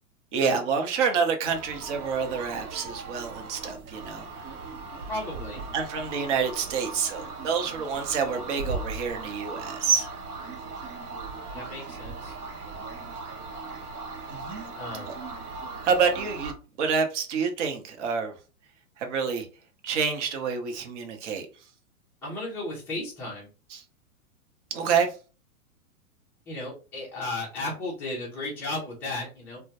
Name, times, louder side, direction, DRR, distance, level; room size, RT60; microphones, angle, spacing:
voice 1, 0.3-4.2 5.7-10.1 14.3-14.7 15.1-15.2 15.8-16.5 16.8-18.3 19.0-19.5 19.8-21.5 23.7-23.8 24.7-25.1, right 6 dB, 50° right, 5 dB, 0.8 m, -27 dB
sound 1, 1.4-16.5, right 3 dB, 85° right, 0.8 m, -38 dB
voice 2, 5.1-5.6 11.5-12.3 14.8-15.1 22.2-23.5 26.5-29.6, left 2 dB, 5° left, -5 dB, 0.3 m, -34 dB
2.1 x 2.1 x 2.8 m, 0.34 s
hypercardioid pair, 115°, 44 cm